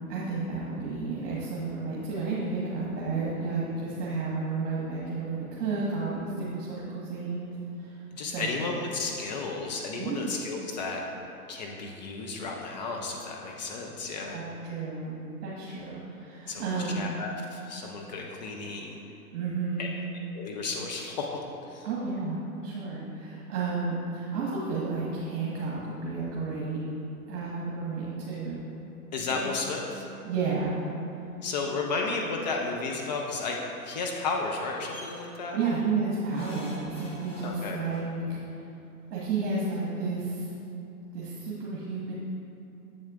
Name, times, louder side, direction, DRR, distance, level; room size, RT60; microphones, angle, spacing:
voice 1, 0.1-7.5 7.8-8.7 10.0-10.3 14.3-15.2 15.4-17.1 19.3-20.0 21.8-26.8 27.3-28.6 29.3-29.5 30.2-30.8 35.5-38.4 39.1-40.5 41.1-42.1, right 4 dB, 50° right, -6 dB, 1.4 m, -32 dB
voice 2, 8.1-11.0 11.5-14.4 16.5-16.6 17.0-19.0 19.8-19.9 20.3-21.4 21.7-21.9 29.1-30.1 31.4-33.6 33.8-35.6 37.4-37.8, left 4 dB, 30° left, 0 dB, 0.4 m, -33 dB
sound 1, 34.9-35.2 36.3-38.0 39.2-39.3 39.6-39.7, left 1 dB, 15° left, 0.8 m, -46 dB
7.5 x 7.2 x 2.4 m, 2.8 s
figure-of-eight pair, 110°, 45 cm